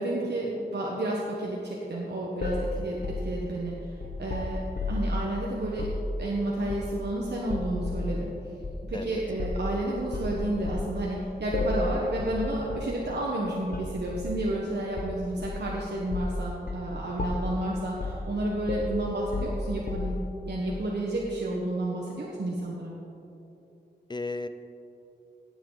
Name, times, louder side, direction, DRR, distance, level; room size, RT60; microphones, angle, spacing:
voice 1, 0.0-8.3 8.9-20.2 20.5-22.9, right 1 dB, 70° right, -3 dB, 1.2 m, -31 dB
sound 1, 2.4-5.2 5.7-6.0 6.7-7.1 7.5-8.1 8.6-8.8 9.4-9.7 10.1-10.9 11.5-11.9 12.2-12.4 12.7-12.9 13.7-14.4 15.0-15.7 16.1-16.4 16.7-16.9 17.2-17.6 18.0-18.3 18.7-20.3, left 2 dB, 55° left, 1.1 m, -32 dB
voice 2, 24.1-24.5, left 3 dB, 25° left, 9 dB, 0.6 m, -35 dB
17.5 x 7.3 x 4.0 m, 2.9 s
wide cardioid pair, 80°, 18 cm